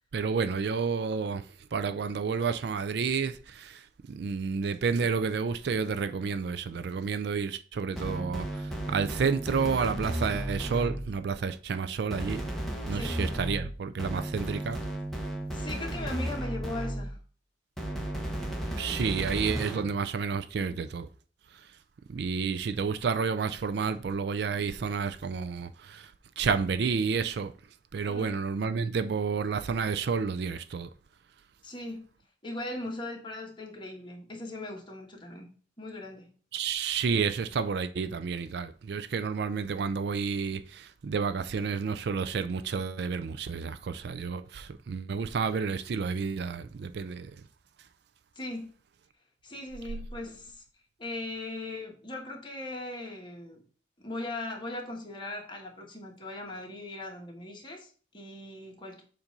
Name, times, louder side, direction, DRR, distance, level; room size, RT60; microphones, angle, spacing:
voice 1, 0.1-1.4 1.7-3.7 4.1-8.4 8.9-12.4 12.9-14.8 18.8-21.1 22.1-26.0 26.4-27.5 27.9-30.9 36.5-47.3, right 5 dB, 60° right, 0.4 m, -30 dB
sound 1, 8.0-11.2 12.1-17.2 17.8-20.0, right 1 dB, ahead, 0.9 m, -34 dB
voice 2, 15.5-17.2 28.1-28.4 31.6-32.0 32.4-36.3 48.3-48.7 49.4-50.6 51.0-53.6 54.0-59.0, left 2 dB, 25° left, 1.4 m, -39 dB
7.1 x 2.6 x 5.2 m
head